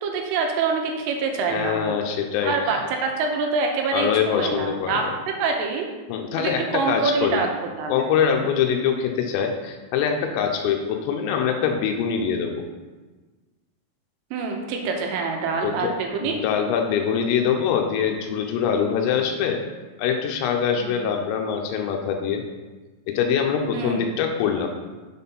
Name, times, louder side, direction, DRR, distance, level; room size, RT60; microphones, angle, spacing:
voice 1, 0.0-2.0 2.4-5.9 6.4-8.0 14.3-16.4 20.8-21.0 23.7-24.1, right 4 dB, 80° right, 2 dB, 3.3 m, -26 dB
voice 2, 1.5-2.8 3.9-5.1 6.1-7.4 7.9-12.6 15.6-15.9 16.2-19.6 20.0-22.4 23.1-24.7, left 7 dB, 90° left, 3 dB, 3.3 m, -24 dB
7.6 x 4.2 x 5.4 m, 1.3 s
omnidirectional pair, 5.8 m